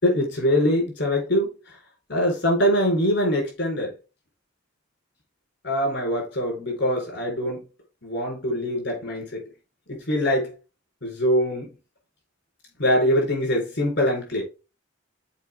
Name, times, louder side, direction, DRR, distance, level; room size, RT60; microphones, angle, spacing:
voice 1, 0.0-1.8 2.1-3.9 5.6-7.6 8.0-9.4 9.9-10.5 11.0-11.7 12.8-14.4, equal, 60° left, 4.3 m, -23 dB
7.4 x 4.5 x 3.6 m
head